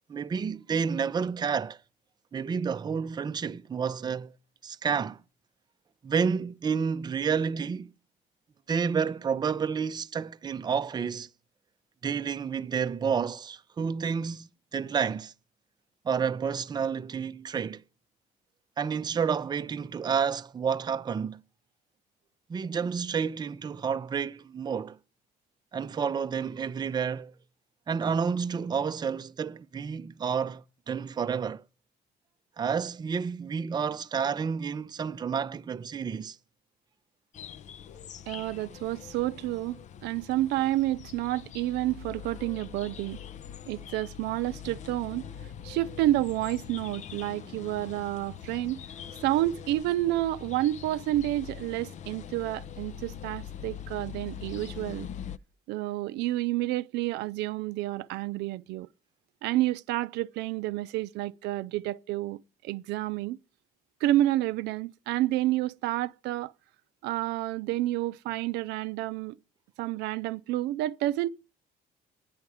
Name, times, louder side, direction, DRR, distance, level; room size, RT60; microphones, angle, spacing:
voice 1, 0.1-1.8 2.3-4.3 4.6-5.2 6.0-7.9 8.7-11.3 12.0-15.3 16.0-17.8 18.8-21.4 22.5-25.0 25.7-27.3 27.9-31.6 32.6-36.4, right 6 dB, 25° right, 0.5 m, -30 dB
sound 1, 37.3-55.4, left 8 dB, 45° left, 0.5 m, -43 dB
voice 2, 38.3-43.2 43.7-45.3 45.6-48.8 49.2-55.1 55.7-58.9 59.4-62.4 62.6-63.4 64.0-66.5 67.0-69.4 69.8-71.3, right 15 dB, 85° right, 0.5 m, -29 dB
9.8 x 9.5 x 4.8 m
cardioid pair, 110°, 17 cm